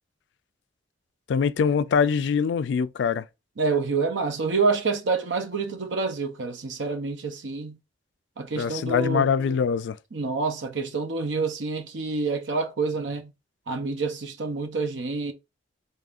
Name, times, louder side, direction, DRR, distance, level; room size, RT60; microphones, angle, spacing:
voice 1, 1.3-3.3 8.6-10.0, left 6 dB, 75° left, 0.3 m, -23 dB
voice 2, 3.6-7.8 8.4-9.3 10.1-13.3 13.7-15.3, right 4 dB, 85° right, 0.7 m, -27 dB
3.6 x 3.3 x 2.5 m
head